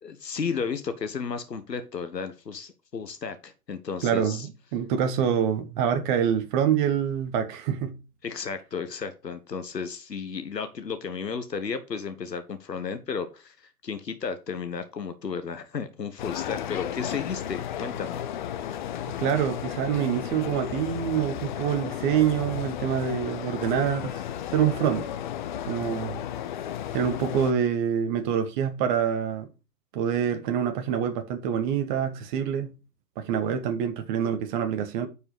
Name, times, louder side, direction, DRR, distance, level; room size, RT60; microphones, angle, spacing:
voice 1, 0.0-4.5 8.2-18.2, left 5 dB, 90° left, 1.4 m, -33 dB
voice 2, 4.0-8.0 19.2-24.2 24.5-25.0 25.7-26.2 26.9-29.5 29.9-32.7 33.2-35.1, right 8 dB, 30° right, 1.3 m, -26 dB
sound 1, 16.2-27.5, left 10 dB, 30° left, 0.6 m, -34 dB
9.8 x 5.3 x 4.8 m
hypercardioid pair, 130°, 48 cm